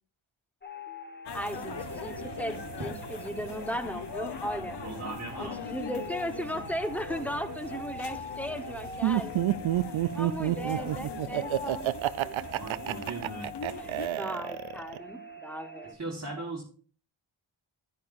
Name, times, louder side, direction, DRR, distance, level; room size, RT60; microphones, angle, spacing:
sound 1, 0.6-15.9, equal, 20° left, 1.6 m, -43 dB
sound 2, 1.3-14.1, left 6 dB, 55° left, 0.9 m, -41 dB
voice 1, 1.3-4.8 5.4-9.3 9.8-12.3 13.7-16.0, equal, 5° left, 9 dB, 1.1 m, -37 dB
voice 2, 4.8-5.6 12.5-13.5 15.8-16.6, right 3 dB, 30° right, -1 dB, 1.8 m, -38 dB
Laughter, 9.0-15.0, right 13 dB, 70° right, 0.5 m, -28 dB
10.5 x 9.8 x 2.6 m, 0.43 s
cardioid pair, 40°, 49 cm